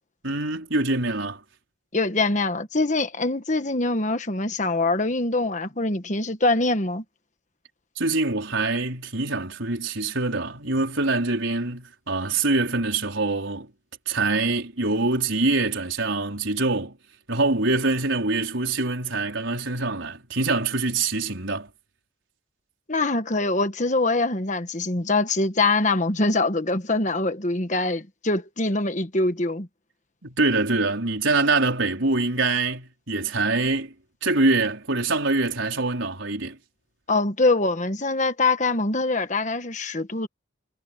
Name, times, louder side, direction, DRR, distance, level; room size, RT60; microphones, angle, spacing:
voice 1, 0.2-1.4 8.0-13.7 14.1-17.0 17.3-21.7 30.2-33.9 34.2-36.6, right 3 dB, 75° right, 4.7 m, -24 dB
voice 2, 1.9-7.0 22.9-29.7 37.1-40.3, left 2 dB, 40° left, 1.4 m, -24 dB
head